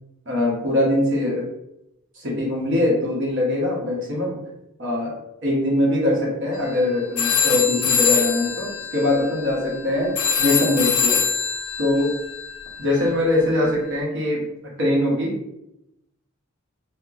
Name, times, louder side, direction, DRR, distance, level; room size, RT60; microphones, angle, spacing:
voice 1, 0.3-1.4 2.2-4.4 4.8-5.1 5.4-10.1 10.4-11.2 11.8-12.1 12.8-14.4 14.8-15.3, left 1 dB, 60° right, -3 dB, 0.8 m, -22 dB
sound 1, 6.6-6.8 7.2-13.8, left 6 dB, 80° left, 0.3 m, -24 dB
2.8 x 2.0 x 2.4 m, 0.84 s
head